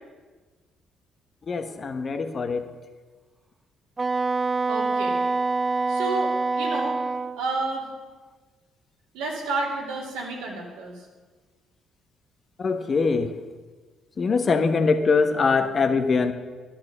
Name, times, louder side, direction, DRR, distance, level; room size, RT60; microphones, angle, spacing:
voice 1, 1.5-2.7 12.6-13.3 14.2-16.3, left 4 dB, 45° left, 8 dB, 1.1 m, -22 dB
Wind instrument woodwind instrument, 4.0-7.4, right 3 dB, 30° right, 0.4 m, -25 dB
voice 2, 4.7-5.2 5.9-7.0 7.4-7.8 9.1-11.1, right 3 dB, 85° right, -1 dB, 2.5 m, -30 dB
12.0 x 8.9 x 6.1 m, 1.3 s
hypercardioid pair, 55°, 0 cm